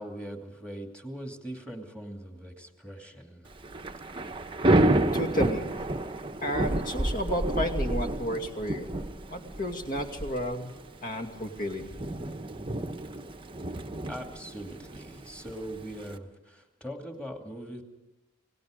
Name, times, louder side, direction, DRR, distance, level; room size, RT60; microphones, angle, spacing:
voice 1, 0.0-3.5 14.1-17.8, equal, 5° left, 3 dB, 2.6 m, -41 dB
Thunder / Rain, 3.5-16.2, right 1 dB, 25° right, 1.0 m, -30 dB
voice 2, 5.1-5.6 6.4-8.9 9.3-10.7 11.0-11.9, equal, 40° left, 4 dB, 2.5 m, -31 dB
29.0 x 18.5 x 5.2 m, 1.1 s
head